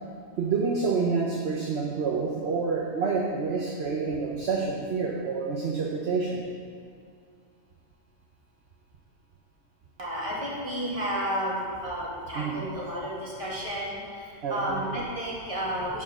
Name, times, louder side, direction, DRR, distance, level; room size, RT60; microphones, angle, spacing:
voice 1, 0.4-6.4 12.4-12.6 14.4-14.8, right 4 dB, 55° right, -2 dB, 1.1 m, -28 dB
voice 2, 10.0-16.0, equal, 25° right, -6 dB, 2.1 m, -32 dB
9.7 x 4.7 x 6.0 m, 2.3 s
omnidirectional pair, 1.4 m